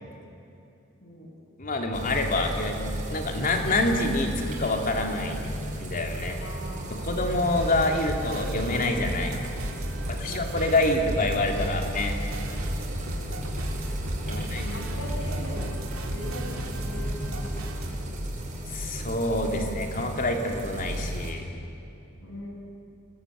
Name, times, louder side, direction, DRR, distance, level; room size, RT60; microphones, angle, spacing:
voice 1, 1.0-1.3 6.4-7.3 10.0-10.4 13.1-13.4 14.3-15.7 16.0-18.2 22.2-22.5, equal, 70° left, -1 dB, 7.7 m, -41 dB
voice 2, 1.6-2.8 3.1-5.4 5.8-6.4 6.9-9.4 10.1-12.2 14.2-14.6 18.7-21.4, left 2 dB, 45° left, 3 dB, 3.0 m, -27 dB
sound 1, 1.9-21.3, equal, 40° right, 5.4 m, -34 dB
sound 2, 7.5-17.9, equal, 85° right, 3.1 m, -34 dB
28.5 x 19.5 x 9.3 m, 2.6 s
head